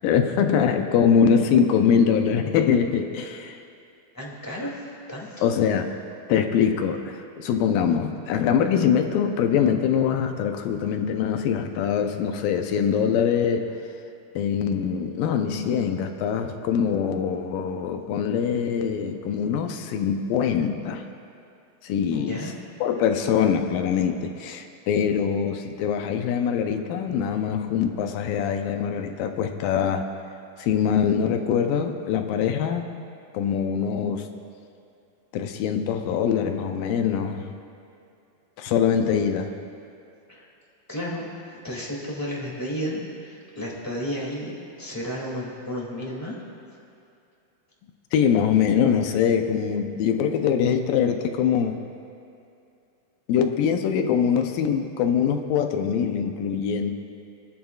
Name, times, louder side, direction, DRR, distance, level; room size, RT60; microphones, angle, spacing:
voice 1, 0.0-3.6 5.4-5.9 6.3-13.7 14.4-21.0 21.8-22.5 22.8-30.1 30.6-32.8 33.3-34.3 35.3-37.5 38.6-39.5 48.1-51.8 53.3-56.9, left 7 dB, 75° left, 5 dB, 2.3 m, -23 dB
voice 2, 4.1-4.8 5.1-5.5 22.1-22.5 40.3-40.5 40.9-41.3 41.6-46.3, equal, 10° left, -5 dB, 1.6 m, -32 dB
29.0 x 10.5 x 2.4 m, 2.5 s
omnidirectional pair, 4.4 m